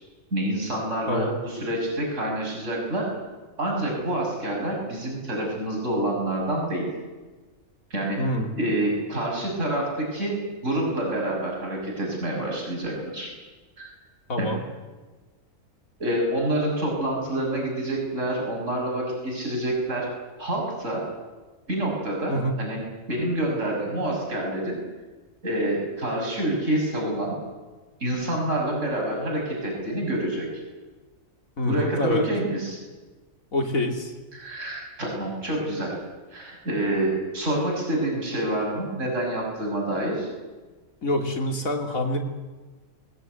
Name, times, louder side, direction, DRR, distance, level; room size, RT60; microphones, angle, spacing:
voice 1, 0.3-3.1 3.6-6.9 7.9-8.3 8.6-13.3 13.8-13.9 14.4-14.5 16.0-20.1 20.4-21.1 21.7-22.8 23.1-24.8 25.4-27.4 28.0-30.6 31.6-32.8 34.3-36.0 36.3-40.3, right 1 dB, 65° right, -1 dB, 6.7 m, -27 dB
voice 2, 8.2-8.5 14.3-14.6 22.3-22.6 31.6-32.3 33.5-34.1 41.0-42.2, left 1 dB, 85° left, 4 dB, 3.3 m, -26 dB
21.0 x 20.5 x 9.4 m, 1.3 s
omnidirectional pair, 1.4 m